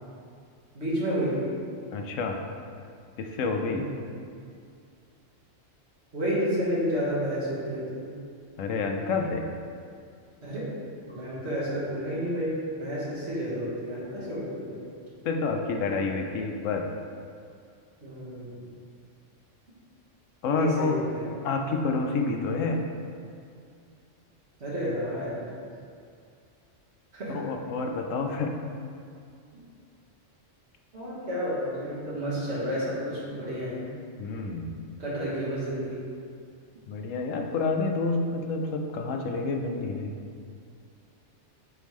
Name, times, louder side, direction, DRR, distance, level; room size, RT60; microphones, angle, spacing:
voice 1, 0.7-1.5 3.7-4.0 6.1-8.1 10.4-10.7 11.1-14.8 18.0-18.7 20.5-21.3 24.6-25.5 27.1-27.4 29.5-29.6 30.9-33.8 35.0-36.0, equal, 60° right, -8 dB, 1.8 m, -31 dB
voice 2, 1.9-2.4 3.2-3.8 8.6-9.5 15.2-16.9 20.4-20.9 21.4-22.8 27.3-28.5 34.2-34.8 36.9-40.1, left 3 dB, 85° left, 3 dB, 1.0 m, -28 dB
9.2 x 3.5 x 3.1 m, 2.4 s
omnidirectional pair, 1.3 m